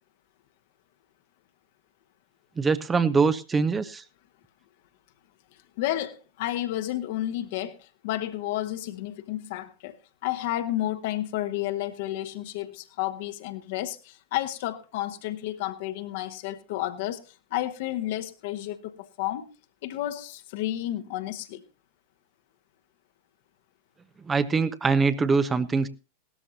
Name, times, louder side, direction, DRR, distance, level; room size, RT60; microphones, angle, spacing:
voice 1, 2.6-4.0 24.2-25.9, right 4 dB, 15° right, 0.7 m, -23 dB
voice 2, 5.8-10.0 10.2-19.5 19.8-21.6, left 14 dB, 50° left, 1.2 m, -31 dB
17.5 x 13.0 x 2.8 m
figure-of-eight pair, 90°, 0 cm